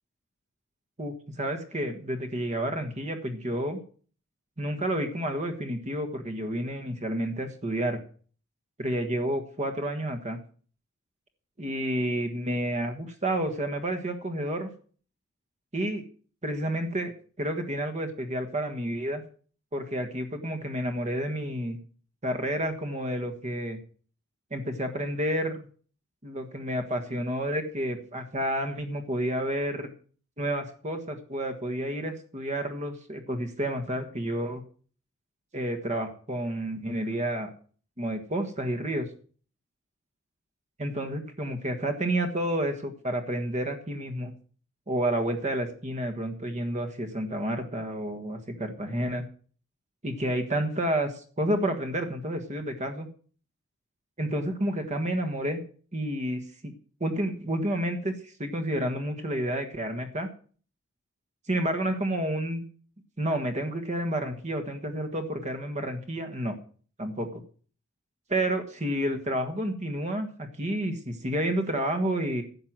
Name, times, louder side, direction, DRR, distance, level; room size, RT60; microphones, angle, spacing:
voice 1, 1.0-3.8 4.6-8.0 8.8-10.4 11.6-14.7 15.7-16.0 16.4-17.1 17.4-19.2 19.7-21.8 22.2-23.8 24.5-25.7 26.2-29.9 30.4-34.6 35.5-37.5 38.0-39.1 40.8-44.3 44.9-49.3 50.0-53.1 54.2-55.6 55.9-56.7 57.0-60.3 61.5-62.6 63.2-66.5 67.0-67.4 68.3-72.4, right 1 dB, 35° right, 6 dB, 1.5 m, -30 dB
11.0 x 7.7 x 7.5 m, 0.43 s
head